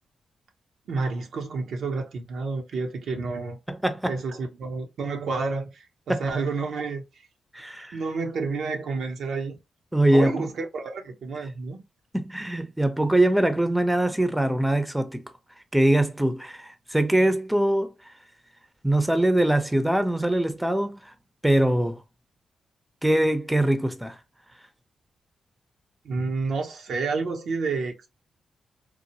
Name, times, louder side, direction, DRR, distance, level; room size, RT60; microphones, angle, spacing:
voice 1, 0.9-3.6 4.1-7.0 7.9-9.6 10.1-11.8 26.0-28.1, right 4 dB, 75° right, 0.6 m, -30 dB
voice 2, 3.7-4.1 6.1-6.2 7.5-8.0 9.9-10.5 12.1-15.2 15.7-17.9 18.8-21.1 21.4-22.0 23.0-24.2, right 1 dB, 10° right, 0.6 m, -22 dB
3.1 x 2.1 x 2.7 m
supercardioid pair, 45°, 0 cm